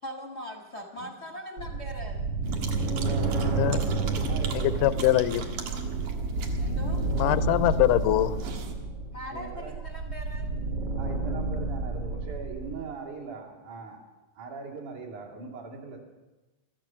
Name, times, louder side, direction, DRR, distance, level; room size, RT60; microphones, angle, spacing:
voice 1, 0.0-2.2 6.6-7.0 9.1-10.5, equal, 50° left, 2 dB, 0.7 m, -41 dB
sound 1, 1.6-12.8, right 3 dB, 55° right, 2.1 m, -30 dB
sound 2, 2.4-8.8, right 5 dB, 85° right, 3.0 m, -39 dB
voice 2, 2.9-5.6 9.3-9.8 11.0-14.0 14.3-16.0, right 4 dB, 70° right, -2 dB, 4.1 m, -41 dB
voice 3, 3.5-3.8 4.5-5.5 7.2-8.4, left 14 dB, 90° left, 14 dB, 2.2 m, -23 dB
14.0 x 13.5 x 7.2 m, 1.1 s
omnidirectional pair, 3.6 m